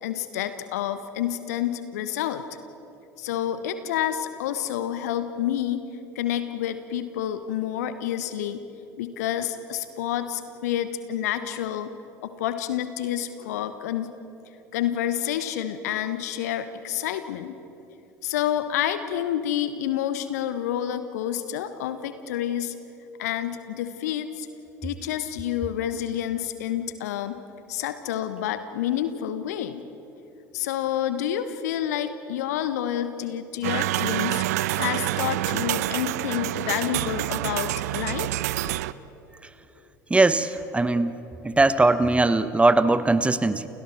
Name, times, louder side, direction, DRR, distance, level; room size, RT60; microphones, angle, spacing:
voice 1, 0.0-2.4 3.2-5.8 6.1-8.6 9.0-11.9 12.2-14.1 14.7-17.5 18.2-22.7 23.2-24.5 24.8-27.4 27.7-29.8 30.5-34.4 34.7-38.3, left 11 dB, 65° left, 11 dB, 1.1 m, -29 dB
sound 1, 33.6-38.9, right 16 dB, 60° right, 0.5 m, -27 dB
voice 2, 40.1-41.1 41.4-43.7, right 2 dB, 10° right, 14 dB, 1.0 m, -20 dB
30.0 x 29.0 x 4.4 m, 2.9 s
figure-of-eight pair, 65°, 9 cm